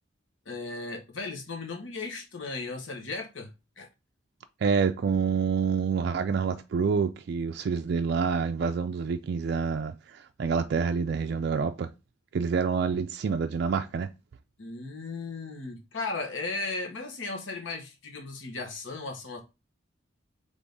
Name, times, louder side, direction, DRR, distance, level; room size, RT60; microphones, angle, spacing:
voice 1, 0.4-3.5 3.8-3.9 14.6-19.4, left 3 dB, 80° left, 1.2 m, -36 dB
voice 2, 4.6-11.9 12.3-14.1, right 5 dB, 60° right, 0.3 m, -27 dB
3.5 x 3.5 x 3.9 m
head